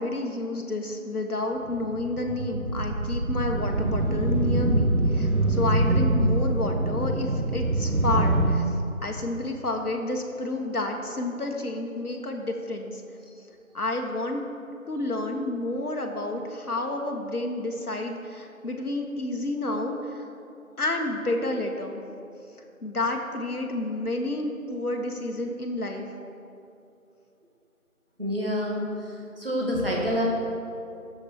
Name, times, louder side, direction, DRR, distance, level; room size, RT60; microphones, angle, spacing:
voice 1, 0.0-13.0 13.7-14.4 14.9-20.3 20.8-22.0 22.8-26.1, left 2 dB, 90° left, 2 dB, 1.2 m, -30 dB
sound 1, 1.7-8.5, right 1 dB, 85° right, 1.1 m, -24 dB
voice 2, 28.2-28.9 29.4-30.2, equal, 40° right, -3 dB, 1.5 m, -27 dB
10.5 x 7.3 x 4.4 m, 2.7 s
figure-of-eight pair, 175°, 44 cm